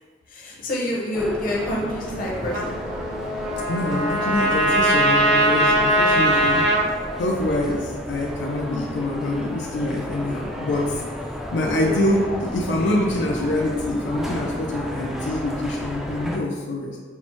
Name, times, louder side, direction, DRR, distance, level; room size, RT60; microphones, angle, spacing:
voice 1, 0.3-2.8 11.6-12.4, left 1 dB, 50° left, -3 dB, 0.8 m, -28 dB
sound 1, 1.1-16.4, equal, 5° right, 0.3 m, -33 dB
Trumpet, 2.5-6.9, right 1 dB, 70° right, 0.5 m, -20 dB
voice 2, 3.7-6.7 7.2-11.0 11.5-17.0, left 1 dB, 85° left, -2 dB, 0.4 m, -25 dB
5.6 x 2.0 x 2.9 m, 1.5 s
head